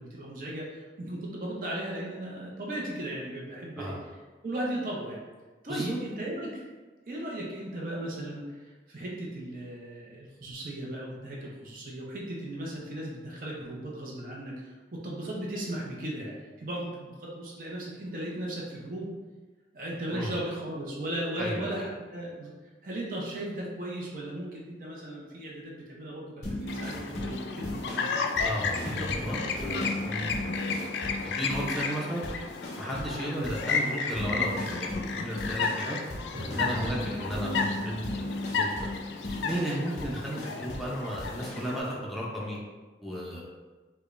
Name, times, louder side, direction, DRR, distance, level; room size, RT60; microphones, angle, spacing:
voice 1, 0.0-3.9 4.4-5.2 5.6-6.6 7.1-19.1 19.7-22.5 22.8-28.2 33.2-33.4 36.3-37.0, right 1 dB, 50° right, -4 dB, 0.6 m, -37 dB
voice 2, 21.4-21.9 28.4-30.9 31.2-32.2 32.8-36.0 36.5-38.9 39.4-42.6 43.0-43.4, equal, ahead, -6 dB, 0.6 m, -34 dB
sound 1, 26.4-32.0 32.2-33.2 33.4-40.9 41.2-41.6, left 1 dB, 40° left, 0.6 m, -36 dB
Chirp tweet, 26.7-41.8, left 5 dB, 75° left, 0.3 m, -33 dB
4.8 x 2.2 x 2.5 m, 1.3 s
head